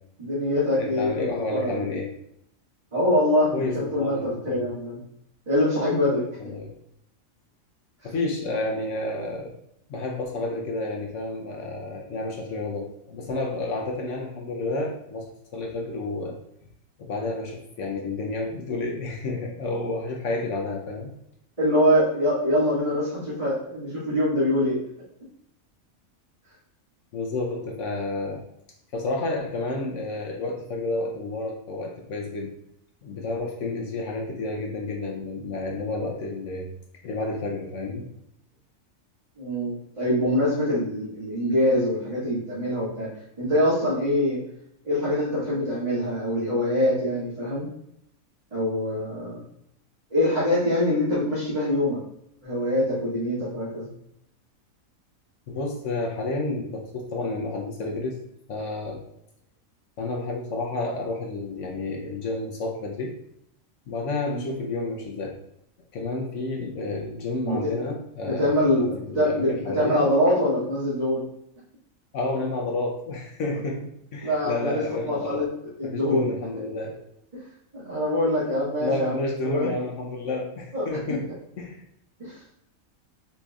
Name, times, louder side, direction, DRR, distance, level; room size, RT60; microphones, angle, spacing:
voice 1, 0.2-1.8 2.9-5.0 5.5-6.5 21.6-24.8 39.4-43.1 43.4-44.4 44.8-47.7 48.5-49.4 50.1-52.0 52.4-53.9 64.3-64.4 67.4-67.7 68.2-71.2 74.2-75.4 75.8-76.2 77.8-79.1 79.4-79.7 80.7-80.9 82.2-82.4, left 1 dB, 30° right, -13 dB, 2.0 m, -24 dB
voice 2, 0.8-2.2 3.5-4.7 6.4-6.7 8.0-9.5 9.9-16.4 17.0-21.1 27.1-28.4 28.9-32.5 33.0-36.7 37.0-38.1 55.5-58.2 58.5-59.1 60.0-63.2 63.9-65.4 65.9-70.1 72.1-75.4 75.8-76.9 78.8-81.8, left 2 dB, 65° left, 0 dB, 1.0 m, -30 dB
6.8 x 3.3 x 2.4 m, 0.76 s
omnidirectional pair, 1.4 m